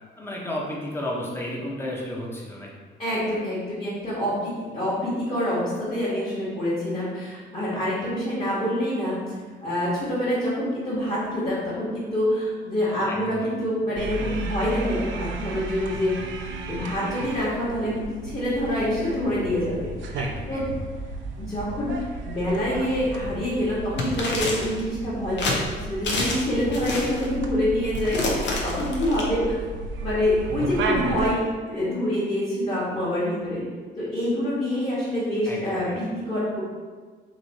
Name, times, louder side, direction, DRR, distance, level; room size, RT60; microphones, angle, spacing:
voice 1, 0.2-2.7 13.1-13.5 20.1-20.7 35.5-36.0, left 1 dB, 10° left, -3 dB, 0.8 m, -33 dB
voice 2, 3.0-9.2 9.6-16.4 16.7-20.2 20.5-20.6 21.4-29.6 30.0-33.6 34.0-36.6, left 1 dB, 30° left, -11 dB, 1.4 m, -26 dB
sound 1, 14.0-31.3, right 3 dB, 75° right, 0.5 m, -33 dB
sound 2, 24.0-24.8 25.4-25.6 26.0-26.5 26.7-27.3 27.9-29.2, left 2 dB, 65° left, 0.7 m, -27 dB
3.1 x 2.7 x 4.0 m, 1.5 s
cardioid pair, 90°, 20 cm